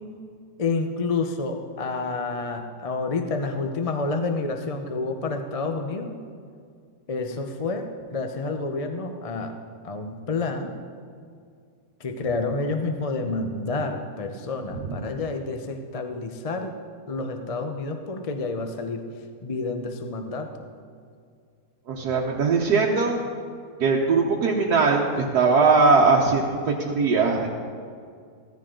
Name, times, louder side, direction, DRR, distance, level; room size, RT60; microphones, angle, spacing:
voice 1, 0.6-6.2 7.1-9.6 9.8-10.8 12.0-16.7 17.1-19.0 19.4-20.6, left 3 dB, 35° left, 6 dB, 0.6 m, -29 dB
voice 2, 21.9-23.2 23.8-27.5, right 4 dB, 85° right, -3 dB, 1.6 m, -20 dB
16.0 x 14.5 x 3.8 m, 2.2 s
omnidirectional pair, 1.6 m